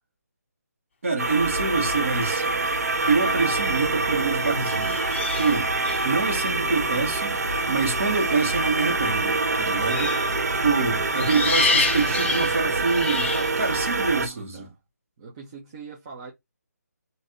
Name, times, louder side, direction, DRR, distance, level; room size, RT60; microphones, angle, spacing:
voice 1, 1.0-2.5 3.1-5.7 6.0-7.4 7.7-10.2 10.5-14.7, right 4 dB, 50° right, 1.4 m, -26 dB
sound 1, 1.2-14.3, right 3 dB, 65° right, 0.8 m, -25 dB
sound 2, 3.2-3.5 4.6-6.1 9.8-10.3 11.1-13.6, left 4 dB, 40° left, 0.5 m, -27 dB
voice 2, 10.5-10.8 11.6-12.0 14.1-14.8 15.2-16.3, right 5 dB, 20° right, 0.6 m, -43 dB
3.0 x 2.6 x 2.5 m
hypercardioid pair, 165°, 9 cm